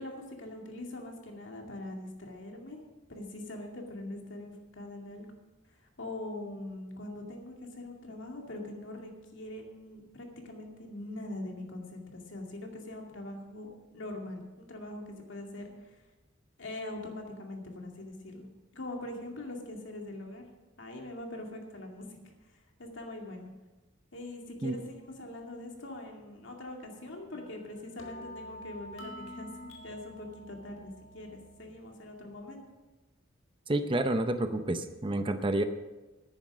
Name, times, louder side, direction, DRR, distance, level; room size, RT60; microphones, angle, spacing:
voice 1, 0.0-2.8 3.1-5.3 6.0-16.0 16.6-18.5 18.7-20.5 20.8-22.1 22.5-23.5 24.1-32.6, left 1 dB, 65° left, 1 dB, 2.3 m, -42 dB
sound 1, 27.3-31.7, equal, 80° left, 1.6 m, -48 dB
voice 2, 33.7-35.6, right 1 dB, 25° right, 9 dB, 0.6 m, -29 dB
10.5 x 9.9 x 6.2 m, 1.1 s
head